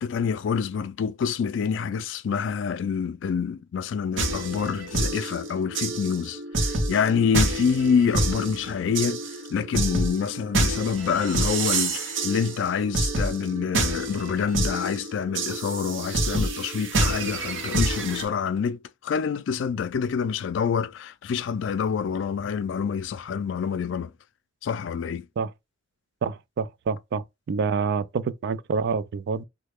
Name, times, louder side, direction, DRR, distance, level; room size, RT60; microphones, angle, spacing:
voice 1, 0.0-9.2 9.5-24.1 24.6-25.3, left 6 dB, 70° left, 0.3 m, -27 dB
sound 1, 4.2-18.2, right 2 dB, 80° right, 0.8 m, -28 dB
voice 2, 26.2-29.4, right 5 dB, 60° right, 0.3 m, -27 dB
3.2 x 2.1 x 3.4 m
head